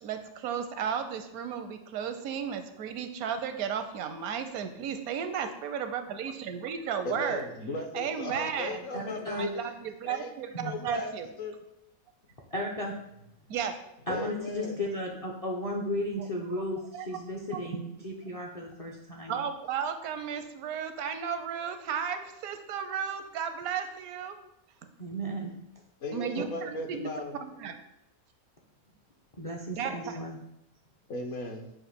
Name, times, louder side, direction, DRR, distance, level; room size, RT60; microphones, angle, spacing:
voice 1, 0.0-7.5 7.9-8.8 9.3-11.3 13.5-13.7 16.9-17.1 17.5-17.6 18.3-18.4 19.3-24.4 26.1-27.1 27.4-27.8 29.8-29.9, right 7 dB, 85° right, 8 dB, 1.1 m, -34 dB
voice 2, 7.0-9.7 10.0-10.3 10.6-11.1 11.4-11.5 14.1-14.8 26.0-27.4 31.1-31.7, left 2 dB, 60° left, 3 dB, 1.0 m, -36 dB
voice 3, 8.9-9.5 10.6-10.8 12.5-12.9 14.1-19.4 25.0-25.5 26.4-26.5 29.4-30.4, equal, 45° left, -1 dB, 0.5 m, -35 dB
7.2 x 2.6 x 5.0 m, 0.83 s
omnidirectional pair, 1.5 m